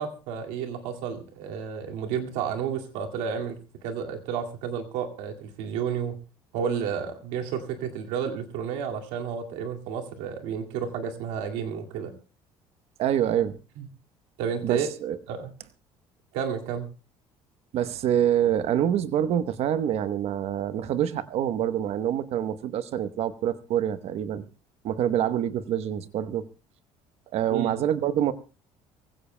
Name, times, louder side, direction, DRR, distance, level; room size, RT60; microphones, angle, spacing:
voice 1, 0.0-6.2 6.5-12.1 13.8-13.9 14.4-14.9 15.3-15.5 16.3-16.9 27.5-27.7, right 7 dB, 90° right, 3 dB, 2.2 m, -31 dB
voice 2, 13.0-13.6 14.6-15.2 17.7-24.4 24.8-26.5 27.3-28.3, right 10 dB, 65° right, 12 dB, 1.0 m, -26 dB
23.5 x 16.0 x 2.2 m, 0.34 s
cardioid pair, 100°, 12 cm